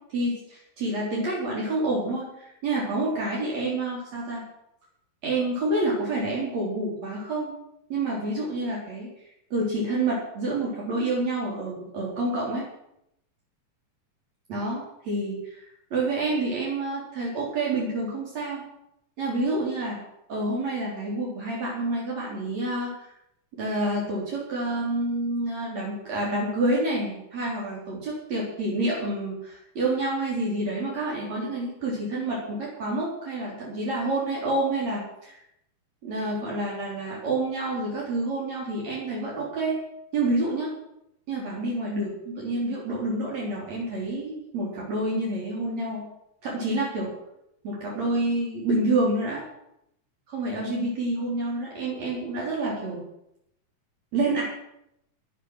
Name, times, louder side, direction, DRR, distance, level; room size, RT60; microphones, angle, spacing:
voice 1, 0.1-4.4 5.2-7.5 7.9-9.1 9.5-12.6 14.5-15.6 15.9-18.6 19.2-20.0 20.3-22.9 23.6-35.3 36.0-39.8 40.1-40.7 41.3-46.0 46.4-47.1 47.6-49.4 50.3-53.1 54.1-54.4, right 2 dB, 60° right, -5 dB, 4.9 m, -28 dB
14.5 x 11.5 x 6.3 m, 0.79 s
omnidirectional pair, 3.4 m